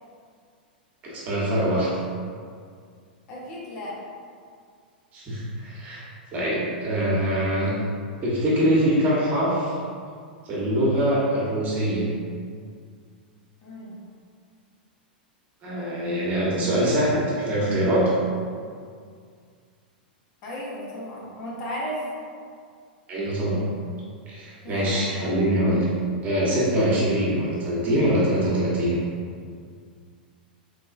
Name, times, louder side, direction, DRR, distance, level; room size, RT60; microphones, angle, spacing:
voice 1, 1.0-1.9 5.1-6.0 6.3-7.7 8.2-9.7 10.4-12.1 15.6-18.1 23.1-23.6 24.3-25.9 26.2-29.0, right 1 dB, 30° right, -7 dB, 1.1 m, -23 dB
voice 2, 3.3-4.0 13.6-13.9 20.4-22.0 24.6-25.2, equal, 45° left, -5 dB, 0.8 m, -35 dB
3.5 x 2.9 x 2.5 m, 2.1 s
figure-of-eight pair, 95°, 5 cm